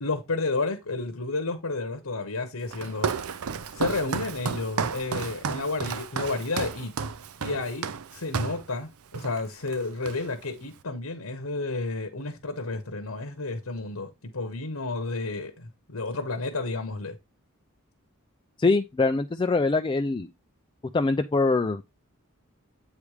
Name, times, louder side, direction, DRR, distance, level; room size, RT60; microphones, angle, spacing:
voice 1, 0.0-3.1 3.7-6.9 7.4-17.2, left 3 dB, 80° left, 1.1 m, -31 dB
Walk footsteps, 2.7-8.7 9.1-9.4 9.7-10.5, right 6 dB, 80° right, 0.6 m, -32 dB
voice 2, 18.6-20.3 20.9-21.8, left 3 dB, 20° left, 0.4 m, -23 dB
8.3 x 3.3 x 4.9 m
head